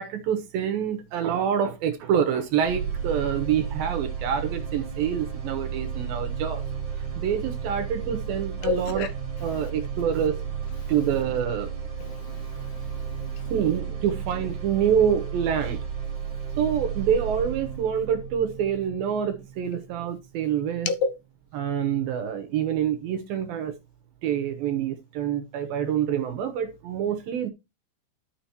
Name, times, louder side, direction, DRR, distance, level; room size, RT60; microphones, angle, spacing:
voice 1, 0.0-6.6 7.2-9.1 9.4-10.4 10.9-11.7 13.5-15.8 16.6-20.9 21.5-23.7 24.2-27.5, right 8 dB, 75° right, 2.4 m, -26 dB
sound 1, 2.6-20.6, right 7 dB, 40° right, 1.8 m, -33 dB
voice 2, 8.6-9.1 10.8-10.9 12.0-13.5 20.9-21.1, left 5 dB, 80° left, 3.0 m, -31 dB
11.5 x 6.8 x 2.9 m
omnidirectional pair, 4.8 m